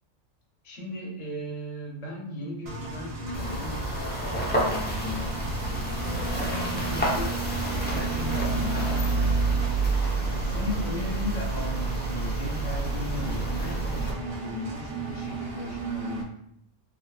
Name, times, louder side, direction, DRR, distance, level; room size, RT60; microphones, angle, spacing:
voice 1, 0.6-5.4 6.0-7.4 7.7-9.5 10.2-16.4, left 2 dB, 75° left, -2 dB, 1.3 m, -37 dB
Engine, 2.7-16.2, right 4 dB, 60° right, 0.8 m, -36 dB
sound 1, 3.3-14.1, right 2 dB, 10° left, 0.4 m, -28 dB
3.5 x 2.9 x 2.3 m, 0.72 s
omnidirectional pair, 1.3 m